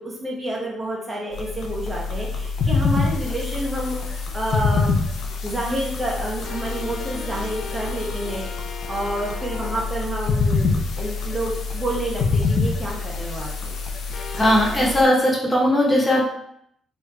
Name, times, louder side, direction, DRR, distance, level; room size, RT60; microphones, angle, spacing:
voice 1, 0.0-4.9 5.4-13.7, right 1 dB, 25° right, -3 dB, 0.8 m, -29 dB
sound 1, 1.3-15.0, left 4 dB, 65° left, 0.5 m, -26 dB
voice 2, 14.4-16.2, equal, 15° left, -3 dB, 1.0 m, -18 dB
3.1 x 2.4 x 3.2 m, 0.72 s
cardioid pair, 90°, 0 cm